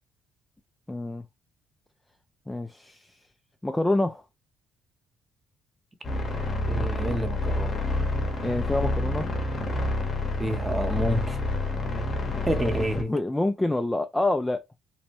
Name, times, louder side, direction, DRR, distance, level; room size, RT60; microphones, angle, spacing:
voice 1, 0.9-1.2 2.5-3.2 3.6-4.2 8.4-9.3 12.3-12.7 13.1-14.6, left 2 dB, 10° left, 0.4 m, -27 dB
sound 1, 6.0-13.0, left 2 dB, 40° left, 0.9 m, -28 dB
voice 2, 6.6-7.7 10.4-11.4 12.4-13.1, equal, 20° right, 0.7 m, -28 dB
3.1 x 2.1 x 2.9 m
cardioid pair, 100°, 0 cm